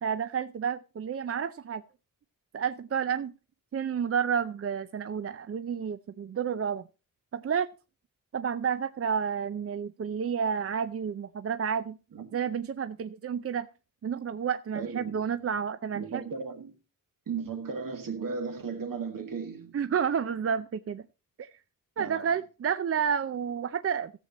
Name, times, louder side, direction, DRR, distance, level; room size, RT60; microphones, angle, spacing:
voice 1, 0.0-1.8 2.5-3.3 3.7-6.8 7.3-7.7 8.3-12.0 12.3-13.7 14.0-16.3 19.7-21.0 21.4-21.5 22.0-24.1, right 7 dB, 40° right, 0.5 m, -30 dB
voice 2, 14.7-15.2 15.9-16.7 17.3-19.8 22.0-22.3, right 5 dB, 70° right, 1.9 m, -36 dB
14.5 x 7.4 x 4.1 m
wide cardioid pair, 135°, 34 cm